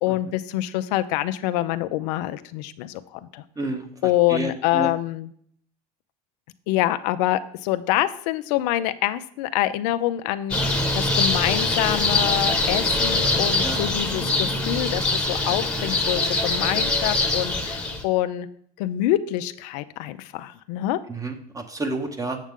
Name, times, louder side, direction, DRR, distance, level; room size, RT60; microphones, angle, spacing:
voice 1, 0.0-3.4 4.0-5.3 6.7-18.5 18.8-21.0, left 14 dB, 75° left, 11 dB, 0.5 m, -26 dB
voice 2, 4.3-4.9 13.6-13.8 21.2-22.4, right 2 dB, 15° right, 7 dB, 1.1 m, -29 dB
sound 1, 10.5-18.0, left 2 dB, 5° left, 1.2 m, -23 dB
7.4 x 7.2 x 3.6 m, 0.63 s
supercardioid pair, 100°, 21 cm